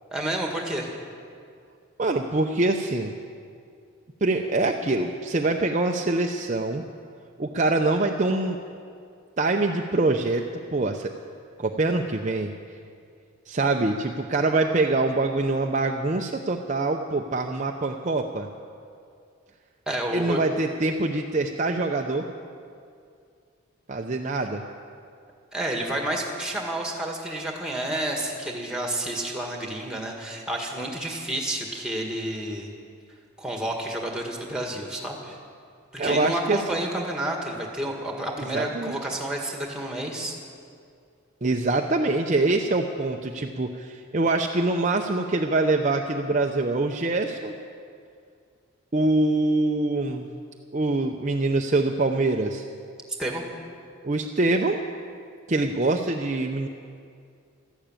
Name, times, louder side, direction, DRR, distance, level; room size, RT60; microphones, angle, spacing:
voice 1, 0.1-0.9 19.9-20.4 25.5-32.7 33.4-35.4 35.9-40.4 53.2-53.4, right 1 dB, 5° right, 1 dB, 1.8 m, -30 dB
voice 2, 2.0-3.1 4.2-6.8 7.4-8.6 9.4-10.4 10.7-11.1 11.6-12.5 13.5-18.5 20.1-22.3 23.9-24.6 36.0-36.6 38.5-39.0 41.4-47.5 48.9-50.3 50.7-52.6 54.0-54.8 55.5-56.7, right 2 dB, 35° right, 2 dB, 0.6 m, -24 dB
13.5 x 12.0 x 8.9 m, 2.3 s
head